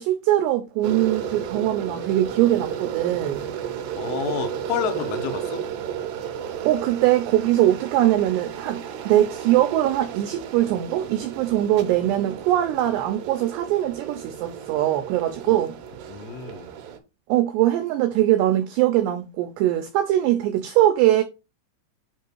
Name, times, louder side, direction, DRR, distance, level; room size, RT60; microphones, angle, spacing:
voice 1, 0.0-3.5 6.6-15.8 17.3-21.2, right 13 dB, 90° right, 2.4 m, -21 dB
sound 1, 0.8-17.0, right 9 dB, 75° right, 2.7 m, -33 dB
voice 2, 4.0-5.6 15.5-15.6 16.1-16.7, left 8 dB, 80° left, 3.4 m, -30 dB
8.5 x 3.0 x 4.4 m
omnidirectional pair, 5.6 m